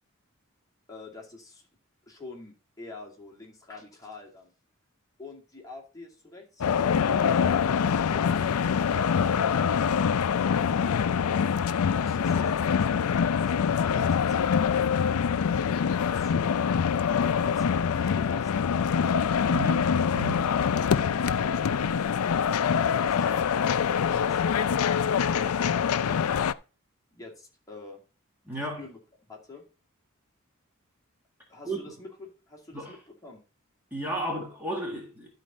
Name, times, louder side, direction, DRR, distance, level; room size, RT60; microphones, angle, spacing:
voice 1, 0.9-1.7 2.1-4.5 5.2-9.8 11.9-14.9 16.1-16.7 17.4-18.9 20.0-22.2 22.9-25.7 27.2-28.0 28.6-29.0 29.3-29.6 31.5-33.4, left 3 dB, 15° left, 2.4 m, -46 dB
sound 1, 6.6-26.5, left 7 dB, 90° left, 0.4 m, -25 dB
voice 2, 19.5-20.5 28.5-28.8 31.7-31.8 32.7-32.9 33.9-35.3, right 1 dB, 10° right, 1.8 m, -33 dB
12.0 x 4.3 x 5.2 m
head